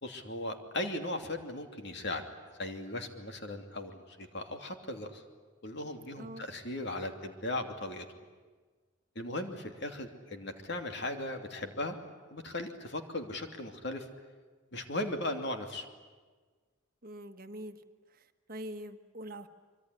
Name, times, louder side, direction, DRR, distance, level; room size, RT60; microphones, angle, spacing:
voice 1, 0.0-2.2 2.6-5.2 5.6-8.1 9.1-12.0 12.3-14.1 14.7-15.9, left 1 dB, 55° left, 5 dB, 2.8 m, -37 dB
voice 2, 6.2-6.5 17.0-17.8 18.1-19.5, right 1 dB, 40° right, 8 dB, 1.5 m, -44 dB
24.5 x 24.0 x 9.9 m, 1.4 s
head